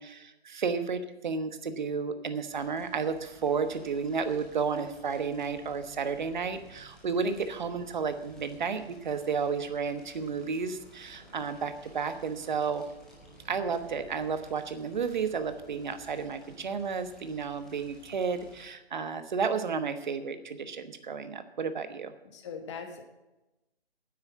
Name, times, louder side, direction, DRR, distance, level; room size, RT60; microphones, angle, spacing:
voice 1, 0.0-12.8 13.4-22.1, right 5 dB, 45° right, 10 dB, 1.2 m, -32 dB
Fire, 2.5-18.7, right 1 dB, ahead, 0.8 m, -54 dB
voice 2, 22.2-23.0, left 6 dB, 30° left, 5 dB, 1.3 m, -40 dB
9.6 x 8.6 x 8.2 m, 1.0 s
figure-of-eight pair, 155°, 31 cm